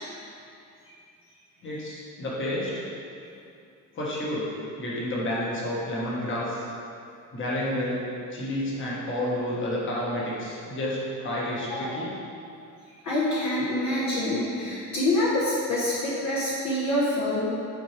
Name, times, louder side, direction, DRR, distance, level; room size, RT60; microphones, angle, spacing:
voice 1, 1.6-2.9 3.9-4.5 4.8-6.6 7.3-8.0 8.3-12.1, left 1 dB, 35° left, -5 dB, 1.6 m, -30 dB
voice 2, 11.7-12.0 13.0-17.4, left 1 dB, 55° left, -7 dB, 1.3 m, -26 dB
8.9 x 4.6 x 3.4 m, 2.6 s
cardioid pair, 145°, 32 cm